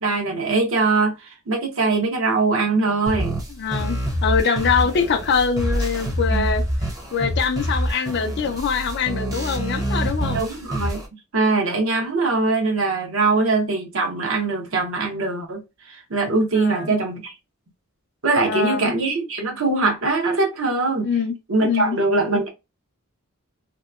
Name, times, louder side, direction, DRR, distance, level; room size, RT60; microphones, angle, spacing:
voice 1, 0.0-3.4 6.3-6.4 10.3-11.0 11.3-15.6 15.9-17.3 18.2-21.1 21.5-22.5, right 3 dB, 60° right, 0.8 m, -22 dB
sound 1, 3.1-11.1, equal, 15° right, 0.7 m, -26 dB
voice 2, 3.5-6.6 7.1-10.5 16.6-16.9 18.4-18.9 21.0-21.3 21.6-22.0, left 6 dB, 50° left, 0.4 m, -23 dB
2.8 x 2.1 x 2.3 m
head